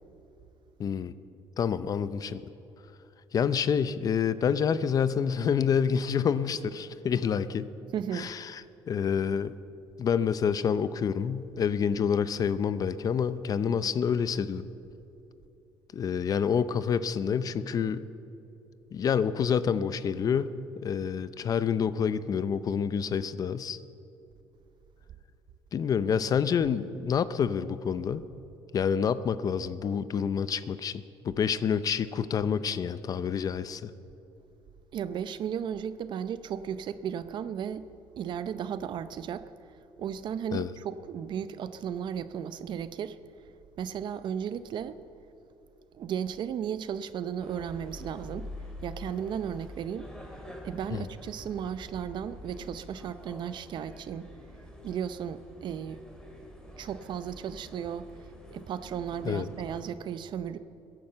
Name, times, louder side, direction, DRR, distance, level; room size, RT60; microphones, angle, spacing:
voice 1, 0.8-1.1 1.6-2.4 3.3-7.7 8.1-9.6 10.0-14.7 15.9-18.1 18.9-20.5 20.8-23.8 25.7-28.2 28.7-33.9 40.5-40.7 50.9-51.1 59.2-59.5, left 7 dB, 40° left, 0.5 m, -28 dB
voice 2, 7.9-8.3 34.9-37.9 38.2-39.5 40.0-43.2 43.8-45.0 45.9-48.5 48.8-50.1 50.6-54.3 54.8-56.0 56.8-58.1 58.5-60.6, right 8 dB, 55° right, 0.6 m, -35 dB
sound 1, 47.4-59.8, left 1 dB, 10° left, 2.7 m, -46 dB
16.0 x 11.0 x 7.7 m
cardioid pair, 120°, 10 cm